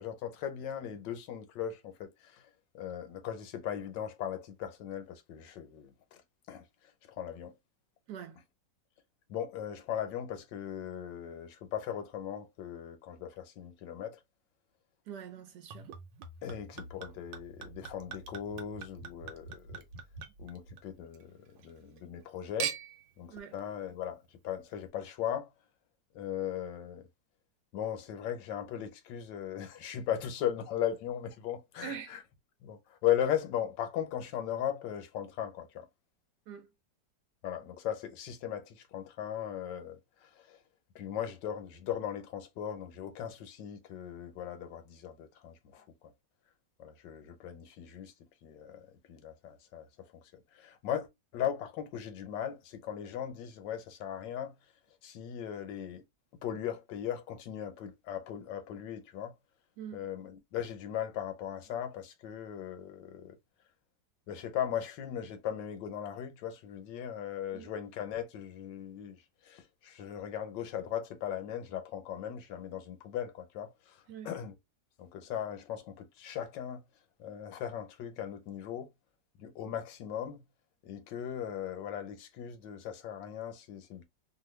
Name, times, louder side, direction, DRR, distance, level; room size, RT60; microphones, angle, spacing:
voice 1, 0.0-2.4 2.7-6.2 6.5-6.7 7.2-7.6 9.3-14.2 16.4-19.8 20.4-21.4 21.6-22.8 23.2-25.5 26.1-27.1 27.7-32.2 32.6-35.9 37.4-40.6 40.9-45.8 46.8-48.1 48.4-51.1 51.3-54.5 55.0-56.0 56.4-59.3 59.9-63.4 64.3-74.5 75.0-76.8 77.2-78.9 79.4-80.4 80.8-84.0, left 10 dB, 85° left, 1.4 m, -38 dB
voice 2, 8.1-8.4 15.1-15.9 23.3-23.6 31.8-32.2 36.5-36.7 59.8-60.1 67.5-67.7 74.1-74.3, right 9 dB, 75° right, 1.1 m, -44 dB
Chink clink / Liquid, 15.7-21.2 21.6-22.2 22.6-23.1 23.8-23.9, right 7 dB, 90° right, 1.4 m, -43 dB
2.9 x 2.6 x 3.1 m
omnidirectional pair, 1.9 m